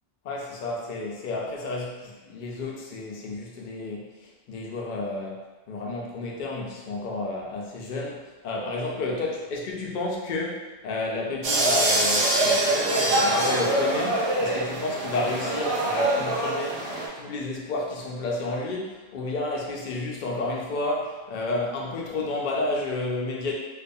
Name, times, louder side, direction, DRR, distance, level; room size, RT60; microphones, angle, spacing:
voice 1, 0.2-23.5, left 2 dB, 60° left, -2 dB, 0.5 m, -31 dB
sound 1, 11.4-17.1, right 1 dB, 70° right, 0.8 m, -24 dB
2.5 x 2.2 x 2.6 m, 1.2 s
omnidirectional pair, 1.2 m